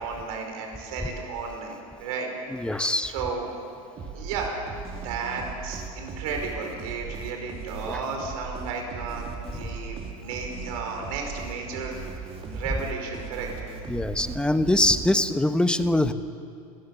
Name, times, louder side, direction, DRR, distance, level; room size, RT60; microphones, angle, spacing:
voice 1, 0.0-2.3 2.8-3.5 4.1-4.6 4.9-9.3 9.5-12.0 12.5-13.5, right 5 dB, 75° right, 2 dB, 5.0 m, -33 dB
voice 2, 2.5-3.1 7.9-8.0 13.9-16.1, left 1 dB, 5° left, 10 dB, 1.0 m, -23 dB
sound 1, 4.0-15.6, right 5 dB, 35° right, 2.8 m, -38 dB
30.0 x 14.5 x 7.2 m, 2.5 s
supercardioid pair, 110°, 18 cm